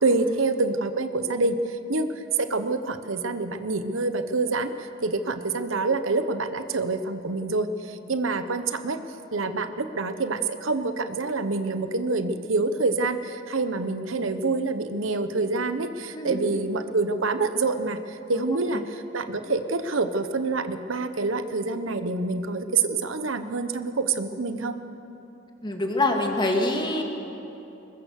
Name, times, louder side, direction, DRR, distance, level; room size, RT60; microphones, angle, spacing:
voice 1, 0.0-1.6 1.9-2.1 2.4-9.0 9.3-24.7, right 3 dB, 80° right, 9 dB, 1.0 m, -26 dB
voice 2, 25.6-27.0, left 2 dB, 25° left, 2 dB, 2.2 m, -25 dB
21.5 x 20.5 x 6.6 m, 2.9 s
head